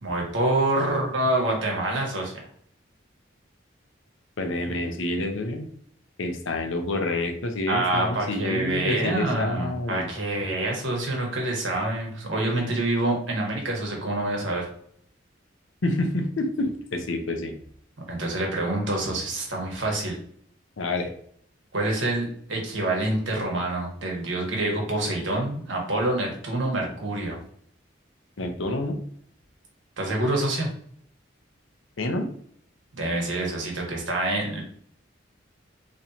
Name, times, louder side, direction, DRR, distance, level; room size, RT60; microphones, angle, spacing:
voice 1, 0.0-2.4 7.7-14.7 18.1-20.2 21.7-27.4 30.0-30.7 33.0-34.6, right 2 dB, 80° right, -1 dB, 1.3 m, -26 dB
voice 2, 4.4-5.7 6.2-10.1 15.8-17.5 20.8-21.1 28.4-29.0 32.0-32.3, left 2 dB, 90° left, 6 dB, 0.7 m, -28 dB
4.1 x 3.1 x 2.8 m, 0.63 s
head